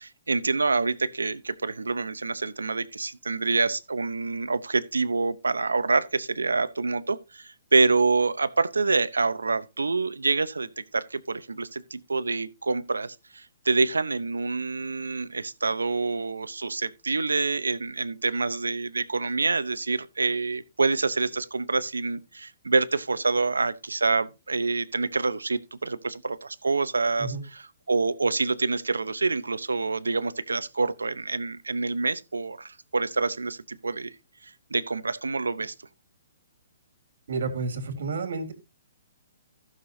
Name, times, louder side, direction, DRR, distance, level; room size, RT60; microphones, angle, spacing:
voice 1, 0.0-27.3 27.9-34.1 34.4-35.7, right 3 dB, 90° right, 0.7 m, -27 dB
voice 2, 37.3-38.5, right 4 dB, 65° right, 3.1 m, -30 dB
15.5 x 6.6 x 2.7 m
hypercardioid pair, 135°, 0 cm